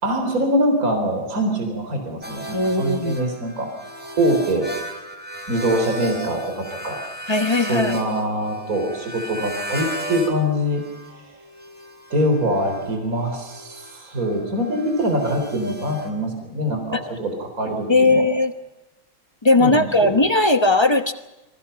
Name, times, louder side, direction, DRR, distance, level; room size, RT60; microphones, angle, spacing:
voice 1, 0.0-3.7 4.2-4.7 5.5-7.0 7.6-10.8 12.1-18.2 19.6-20.1, equal, 40° right, 4 dB, 4.5 m, -23 dB
sound 1, 2.2-10.4 10.6-16.1, right 1 dB, 5° right, 3.7 m, -35 dB
voice 2, 2.5-3.2 7.3-8.0 16.9-17.0 17.9-18.5 19.4-21.1, left 2 dB, 25° left, 8 dB, 0.5 m, -18 dB
26.5 x 23.5 x 5.8 m, 1.0 s
omnidirectional pair, 2.2 m